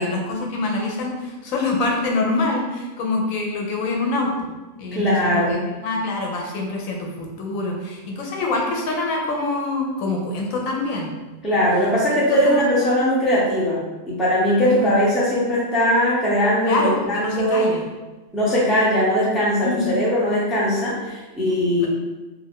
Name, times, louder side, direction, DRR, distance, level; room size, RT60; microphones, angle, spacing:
voice 1, 0.0-5.6 5.8-11.1 12.3-12.7 14.6-14.9 16.6-17.8 19.6-19.9, left 2 dB, 80° left, 0 dB, 1.0 m, -25 dB
voice 2, 4.9-5.6 11.4-13.8 14.1-17.7 18.3-21.9, equal, ahead, -7 dB, 0.4 m, -20 dB
2.5 x 2.4 x 3.5 m, 1.2 s
omnidirectional pair, 1.4 m